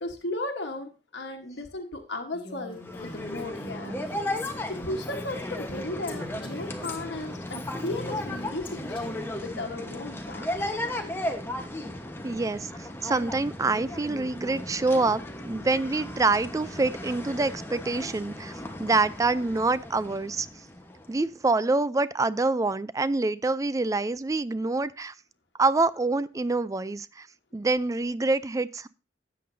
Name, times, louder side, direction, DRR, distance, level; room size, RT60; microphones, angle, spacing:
voice 1, 0.0-4.0 4.7-11.2, left 2 dB, 80° left, 3 dB, 1.3 m, -36 dB
Female speech woman speaking, 2.3-9.4, left 1 dB, 30° left, 2.0 m, -43 dB
sound 1, 2.8-21.2, left 1 dB, 15° left, 1.1 m, -36 dB
voice 2, 12.2-12.7 13.0-18.5 18.8-20.5 21.1-25.1 25.6-27.3 27.5-28.9, right 3 dB, 20° right, 16 dB, 0.4 m, -26 dB
13.0 x 8.5 x 2.6 m, 0.30 s
head